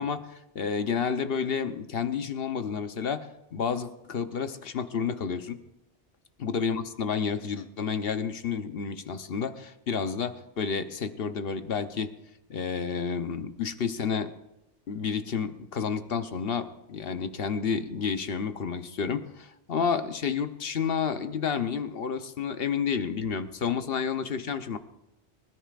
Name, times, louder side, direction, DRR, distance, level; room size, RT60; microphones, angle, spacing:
voice 1, 0.0-5.6 6.4-12.1 12.5-14.3 14.9-24.8, left 6 dB, 60° left, 9 dB, 1.1 m, -30 dB
25.0 x 13.5 x 2.5 m, 0.91 s
omnidirectional pair, 1.2 m